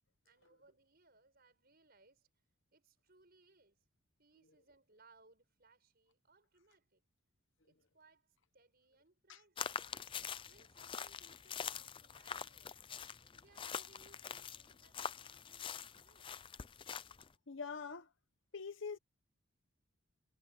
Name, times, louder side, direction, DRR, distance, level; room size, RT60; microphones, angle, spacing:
voice 1, 0.2-2.3 2.7-3.8 4.2-7.0 7.6-9.9 10.5-12.8 13.3-16.4, right 3 dB, 45° right, 6.4 m, -68 dB
sound 1, 9.6-17.3, left 7 dB, 25° left, 0.4 m, -45 dB
voice 2, 17.5-18.1 18.5-19.0, left 5 dB, 60° left, 1.1 m, -44 dB
head